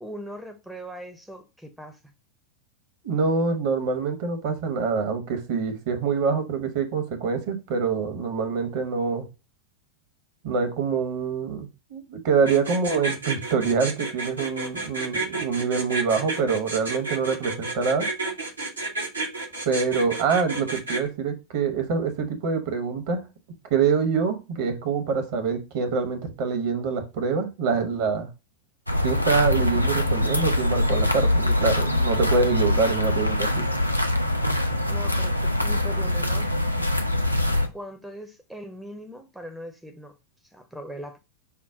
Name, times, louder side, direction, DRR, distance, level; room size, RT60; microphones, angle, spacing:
voice 1, 0.0-2.1 34.9-36.5 37.7-40.2 40.5-41.2, equal, 5° right, 0.5 m, -40 dB
voice 2, 3.0-9.3 10.4-18.1 19.6-23.2 23.7-28.3 29.0-33.6, right 5 dB, 50° right, 0.9 m, -25 dB
sound 1, 12.5-21.1, right 2 dB, 80° right, 0.8 m, -31 dB
sound 2, 28.9-37.7, left 1 dB, 90° left, 0.4 m, -23 dB
5.6 x 2.1 x 3.5 m
figure-of-eight pair, 90°, 0 cm